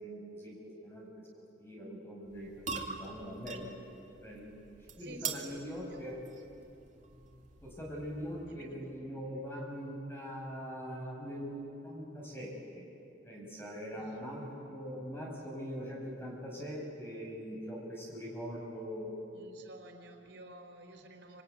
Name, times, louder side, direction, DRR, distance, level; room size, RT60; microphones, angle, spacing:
voice 1, 0.0-3.7 4.2-4.5 5.0-6.2 7.6-12.9 13.2-19.1, equal, 15° left, -2 dB, 5.8 m, -42 dB
sound 1, 2.2-8.6, right 5 dB, 45° right, 2.3 m, -45 dB
voice 2, 5.0-6.1 8.4-8.9 13.9-14.2 19.3-21.4, right 2 dB, 90° right, 2 dB, 4.1 m, -52 dB
26.0 x 25.0 x 9.3 m, 2.8 s
head